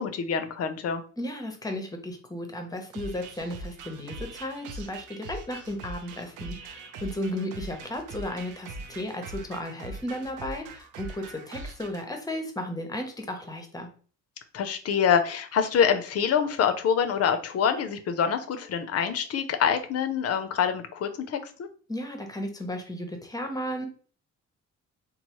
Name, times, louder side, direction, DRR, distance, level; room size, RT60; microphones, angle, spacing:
voice 1, 0.0-1.0 14.5-21.7, left 7 dB, 55° left, 9 dB, 0.5 m, -26 dB
voice 2, 1.2-13.9 21.9-23.9, left 1 dB, 10° left, 4 dB, 0.6 m, -34 dB
sound 1, 2.9-12.0, right 3 dB, 85° right, 0.5 m, -42 dB
3.0 x 2.0 x 2.9 m, 0.41 s
cardioid pair, 90°, 30 cm